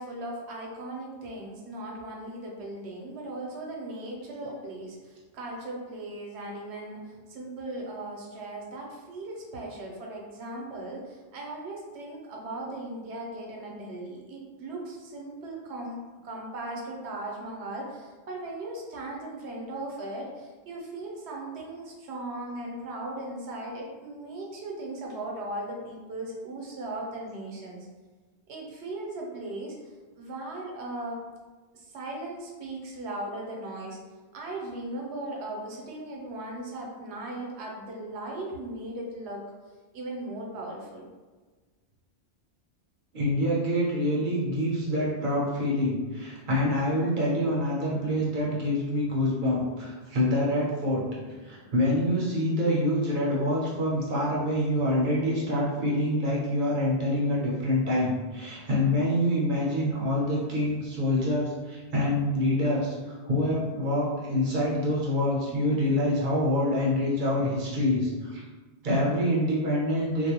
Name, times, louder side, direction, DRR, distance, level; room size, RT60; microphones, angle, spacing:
voice 1, 0.0-27.9 28.5-29.8 30.1-31.2 31.7-34.0 34.3-39.4 39.9-41.1, right 2 dB, 85° right, -1 dB, 0.9 m, -38 dB
voice 2, 43.1-51.0 51.4-68.4 68.8-70.3, left 1 dB, 55° right, -5 dB, 0.7 m, -26 dB
2.4 x 2.1 x 2.8 m, 1.3 s
omnidirectional pair, 1.1 m